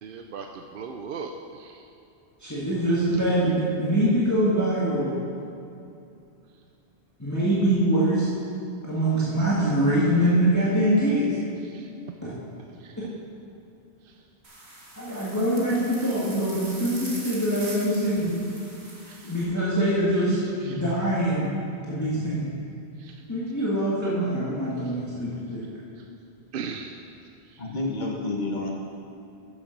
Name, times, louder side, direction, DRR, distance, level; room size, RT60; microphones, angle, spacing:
voice 1, 0.0-1.8 11.7-11.8 12.8-13.0 19.1-19.2 20.7-20.8 23.0-23.1 26.5-26.9, right 5 dB, 65° right, 4 dB, 0.7 m, -37 dB
voice 2, 2.4-5.1 7.2-8.3 8.8-11.4 12.2-12.3 13.0-13.1 15.0-18.4 19.2-21.5 21.9-22.5 23.3-25.6, right 1 dB, 15° left, -9 dB, 1.8 m, -24 dB
sound 1, 14.4-19.4, right 2 dB, 80° right, 2.0 m, -42 dB
voice 3, 27.6-28.7, left 2 dB, 45° left, -1 dB, 1.4 m, -29 dB
12.0 x 7.2 x 5.2 m, 2.6 s
omnidirectional pair, 1.1 m